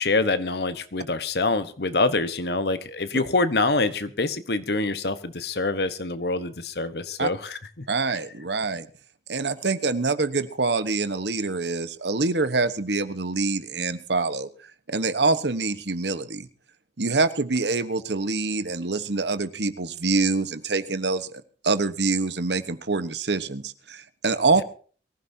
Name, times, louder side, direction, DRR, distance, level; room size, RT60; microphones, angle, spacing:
voice 1, 0.0-7.8, left 3 dB, 65° left, 12 dB, 1.1 m, -25 dB
voice 2, 7.9-8.9 9.3-14.5 14.9-16.5 17.0-24.6, right 3 dB, 75° right, 12 dB, 1.2 m, -25 dB
23.0 x 15.0 x 2.8 m, 0.41 s
head